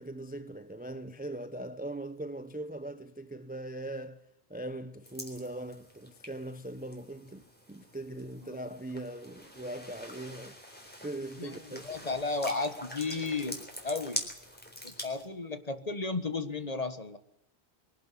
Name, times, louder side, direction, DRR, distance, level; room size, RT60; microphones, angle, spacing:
voice 1, 0.0-10.6 11.0-11.9, right 1 dB, 10° right, 0.6 m, -40 dB
sound 1, 5.0-15.3, equal, 10° left, 3.9 m, -44 dB
voice 2, 11.4-14.2 14.8-17.2, left 3 dB, 35° left, 1.5 m, -34 dB
23.0 x 11.5 x 10.0 m
omnidirectional pair, 1.1 m